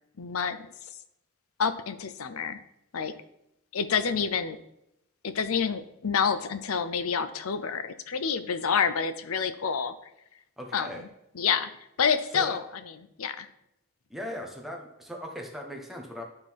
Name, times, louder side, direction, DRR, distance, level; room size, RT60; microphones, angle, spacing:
voice 1, 0.2-0.7 1.6-2.6 2.9-3.1 3.7-4.6 5.2-9.9 10.7-11.1 11.3-11.7 12.0-12.6 13.2-13.5, left 6 dB, 75° left, 12 dB, 0.6 m, -28 dB
voice 2, 10.6-11.0 12.3-12.6 14.1-16.2, left 1 dB, ahead, 0 dB, 1.0 m, -38 dB
11.5 x 3.8 x 4.6 m, 0.82 s
head